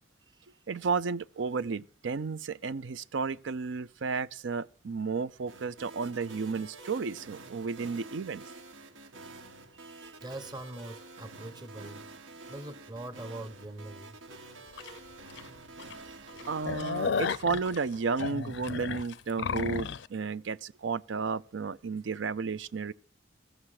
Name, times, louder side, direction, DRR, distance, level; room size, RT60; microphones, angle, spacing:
voice 1, 0.7-8.4 16.5-22.9, right 5 dB, 70° right, 0.5 m, -33 dB
sound 1, 5.5-17.4, right 3 dB, 85° right, 1.4 m, -48 dB
voice 2, 9.7-12.1 12.5-14.2 15.9-16.7, right 1 dB, 20° right, 1.0 m, -44 dB
sound 2, 14.8-14.9 15.4-15.5 15.8-15.9 16.3-20.1, left 5 dB, 60° left, 0.5 m, -33 dB
14.5 x 7.3 x 6.4 m
head